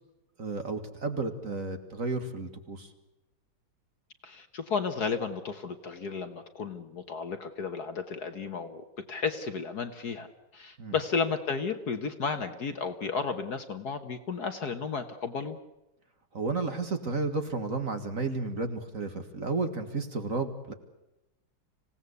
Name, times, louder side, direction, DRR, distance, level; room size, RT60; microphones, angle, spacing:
voice 1, 0.4-2.9 10.8-11.0 16.3-20.7, right 3 dB, 40° right, 7 dB, 2.0 m, -32 dB
voice 2, 4.2-10.3 10.5-15.6, left 5 dB, 50° left, 8 dB, 1.6 m, -33 dB
26.5 x 17.5 x 8.2 m, 0.96 s
omnidirectional pair, 2.4 m